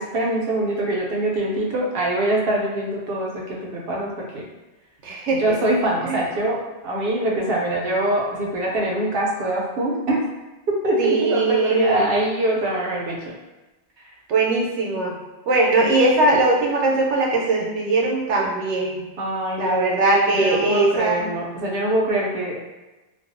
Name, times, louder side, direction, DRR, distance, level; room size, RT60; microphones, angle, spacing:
voice 1, 0.0-4.4 5.4-10.3 10.7-13.3 19.2-22.6, right 1 dB, 65° right, -3 dB, 0.7 m, -24 dB
voice 2, 5.0-5.4 6.0-6.2 11.0-12.0 14.3-15.1 15.5-19.0 19.6-21.2, right 2 dB, 85° right, -2 dB, 0.9 m, -20 dB
2.5 x 2.3 x 2.5 m, 1.1 s
omnidirectional pair, 1.2 m